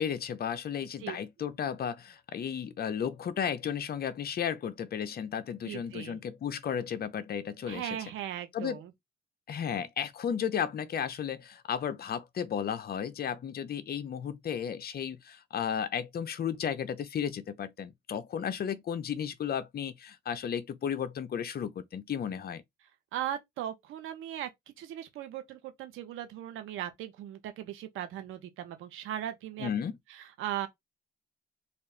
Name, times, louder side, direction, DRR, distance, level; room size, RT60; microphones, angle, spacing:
voice 1, 0.0-7.9 8.5-8.8 9.5-22.6 29.6-30.0, left 8 dB, 50° left, 0.7 m, -34 dB
voice 2, 5.6-6.2 7.7-8.9 23.1-24.5 24.8-29.7 30.4-30.7, right 11 dB, 90° right, 1.1 m, -38 dB
4.1 x 2.5 x 3.3 m
cardioid pair, 90°, 20 cm